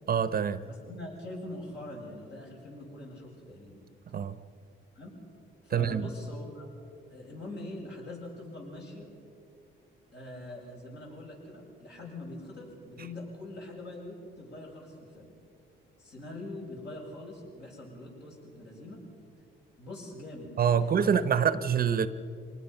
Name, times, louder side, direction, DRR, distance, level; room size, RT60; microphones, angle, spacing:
voice 1, 0.1-0.6 4.1-4.4 5.7-6.1 20.6-22.1, right 7 dB, 50° right, 13 dB, 0.9 m, -25 dB
voice 2, 0.6-3.7 5.0-5.2 5.6-6.7 7.1-9.1 10.1-15.3 16.0-19.0 19.8-21.4, left 1 dB, 60° left, -2 dB, 7.4 m, -43 dB
25.0 x 19.5 x 5.8 m, 2.4 s
cardioid pair, 90°, 20 cm